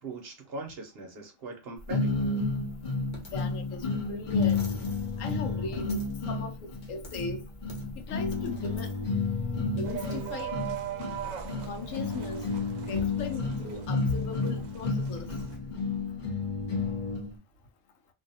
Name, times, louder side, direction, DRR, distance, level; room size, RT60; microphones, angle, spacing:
voice 1, 0.0-2.1, right 3 dB, 55° right, 0.9 m, -40 dB
sound 1, 1.9-17.3, left 3 dB, 45° left, 0.7 m, -31 dB
voice 2, 3.2-4.7 5.2-7.4 8.0-8.9 9.8-10.6 11.6-12.5 12.9-15.3, left 3 dB, 80° left, 1.0 m, -38 dB
sound 2, 9.8-15.6, right 9 dB, 80° right, 1.0 m, -40 dB
2.6 x 2.3 x 2.6 m
omnidirectional pair, 1.4 m